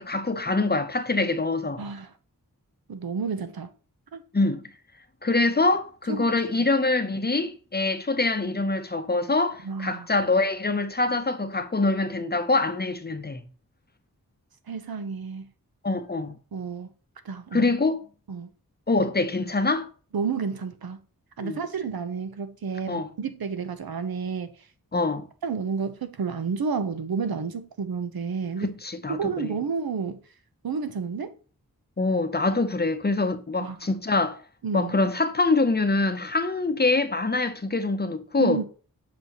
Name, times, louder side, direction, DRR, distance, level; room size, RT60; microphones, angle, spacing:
voice 1, 0.0-1.8 4.3-4.7 5.2-13.4 15.8-16.3 17.5-18.0 18.9-19.9 21.4-21.6 22.9-23.1 24.9-25.3 28.6-29.6 32.0-34.4 34.7-38.6, left 3 dB, 30° left, 0.7 m, -24 dB
voice 2, 1.8-2.1 2.9-3.7 4.1-4.2 6.1-6.3 6.6-6.7 9.6-10.1 14.7-15.5 16.5-16.9 17.2-17.7 18.3-18.5 20.1-21.0 21.4-24.5 25.4-28.7 29.1-30.2 30.6-31.3 33.6-33.8 34.6-34.9 38.4-38.6, right 5 dB, 80° right, 0.8 m, -30 dB
7.8 x 5.1 x 3.0 m
wide cardioid pair, 95°, 35 cm